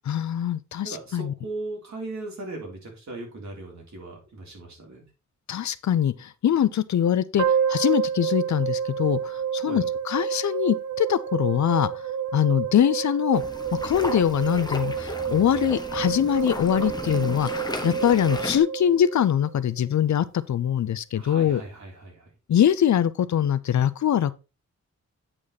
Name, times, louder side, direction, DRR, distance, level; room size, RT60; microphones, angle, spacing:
voice 1, 0.1-1.3 5.5-11.9 12.3-13.4 13.8-21.6 22.5-24.3, left 10 dB, 75° left, 0.6 m, -23 dB
voice 2, 0.8-5.1 9.6-9.9 21.1-22.3, right 2 dB, 70° right, 3.5 m, -38 dB
sound 1, 7.4-19.6, right 8 dB, 85° right, 0.9 m, -29 dB
sound 2, 13.3-18.6, left 2 dB, 15° left, 0.8 m, -35 dB
8.5 x 5.2 x 4.0 m
wide cardioid pair, 160°, 29 cm